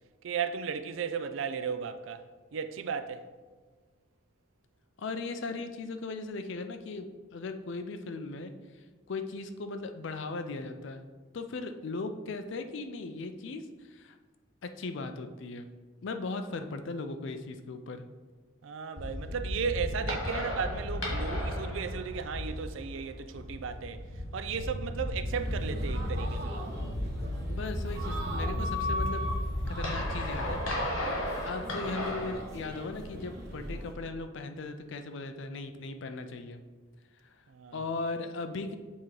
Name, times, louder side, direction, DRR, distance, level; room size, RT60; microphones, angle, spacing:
voice 1, 0.2-2.3 2.5-3.3 18.6-24.0 24.3-26.7 37.5-37.8, right 6 dB, 70° right, 0.4 m, -35 dB
voice 2, 5.0-11.0 11.3-14.2 14.6-15.7 16.0-18.1 27.5-29.2 29.7-30.6 31.4-36.6 37.2-37.4 37.7-38.7, left 3 dB, 65° left, 0.5 m, -38 dB
sound 1, 19.0-32.4, left 1 dB, 85° left, 1.7 m, -34 dB
sound 2, 25.3-33.9, equal, 50° right, 1.1 m, -39 dB
7.2 x 3.0 x 4.6 m
head